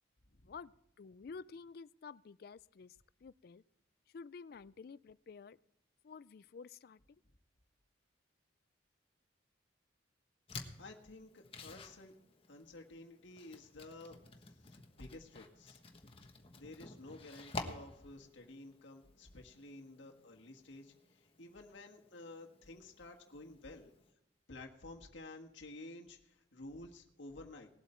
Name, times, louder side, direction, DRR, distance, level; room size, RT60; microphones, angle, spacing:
voice 1, 0.4-3.6 4.1-5.6 6.0-7.2, left 5 dB, 50° left, 19 dB, 0.4 m, -51 dB
sound 1, 10.5-24.1, left 3 dB, 30° left, 1.3 m, -52 dB
voice 2, 10.8-12.1 12.5-14.2 14.6-15.8 16.6-23.9 24.5-27.7, left 2 dB, 75° left, 1 dB, 1.5 m, -52 dB
19.5 x 8.0 x 4.4 m, 0.82 s
head